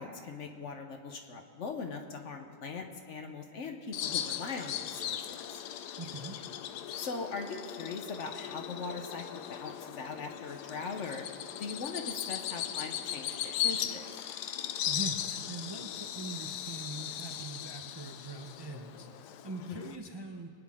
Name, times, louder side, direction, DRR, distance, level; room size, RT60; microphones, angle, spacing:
voice 1, 0.0-5.4 6.9-11.2 11.6-14.0 19.7-19.8, left 4 dB, 55° left, 4 dB, 1.1 m, -40 dB
Bird vocalization bird call bird song, 3.9-20.0, left 10 dB, 80° left, 1.2 m, -38 dB
voice 2, 6.0-6.4 14.9-20.5, right 3 dB, 35° right, 2 dB, 0.4 m, -42 dB
24.5 x 9.5 x 3.6 m, 2.2 s
omnidirectional pair, 1.7 m